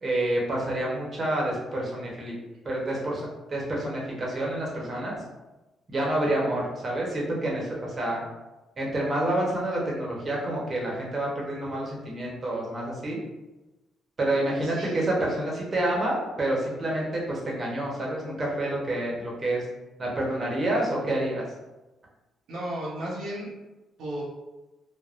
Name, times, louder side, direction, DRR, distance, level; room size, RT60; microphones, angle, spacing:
voice 1, 0.0-2.3 2.6-5.2 5.9-8.2 8.8-13.2 14.2-19.6 20.0-21.4, right 1 dB, 35° right, -3 dB, 0.9 m, -28 dB
voice 2, 14.6-15.0 22.5-23.5 24.0-24.2, right 1 dB, 80° right, -6 dB, 0.9 m, -34 dB
3.4 x 2.1 x 2.5 m, 1.1 s
cardioid pair, 90°, 0 cm